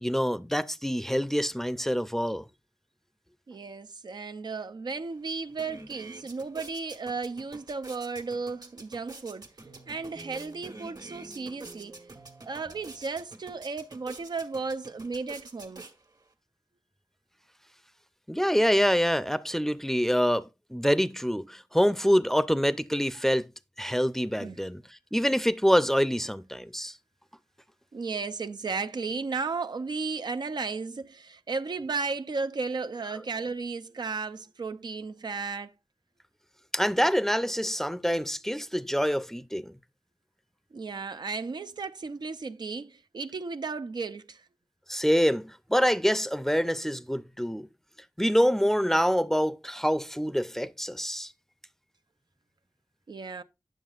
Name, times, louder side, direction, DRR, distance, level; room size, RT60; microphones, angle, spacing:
voice 1, 0.0-2.4 18.3-23.5 23.8-24.8 25.1-26.9 36.7-39.7 44.9-47.7 48.2-51.3, equal, 5° left, 0.5 m, -26 dB
voice 2, 3.5-9.5 9.9-11.9 12.5-15.8 23.2-23.3 24.4-24.6 27.9-35.7 40.7-44.5 53.1-53.4, right 4 dB, 85° right, 0.5 m, -34 dB
sound 1, 5.0-5.1 5.4-16.3, right 2 dB, 65° right, 1.4 m, -48 dB
sound 2, 9.6-13.3, right 2 dB, 50° right, 1.1 m, -51 dB
9.3 x 7.1 x 2.4 m
wide cardioid pair, 50°, 7 cm